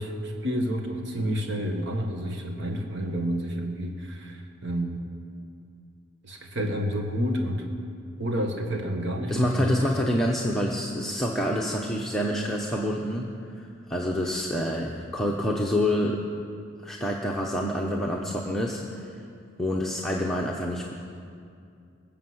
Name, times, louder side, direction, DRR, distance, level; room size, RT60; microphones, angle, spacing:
voice 1, 0.0-5.0 6.2-7.7 8.2-9.8, equal, 60° right, 3 dB, 1.3 m, -29 dB
voice 2, 9.3-13.4 13.9-16.2 16.8-19.1 19.6-20.9, equal, ahead, -3 dB, 0.8 m, -27 dB
20.0 x 7.0 x 7.8 m, 2.4 s
head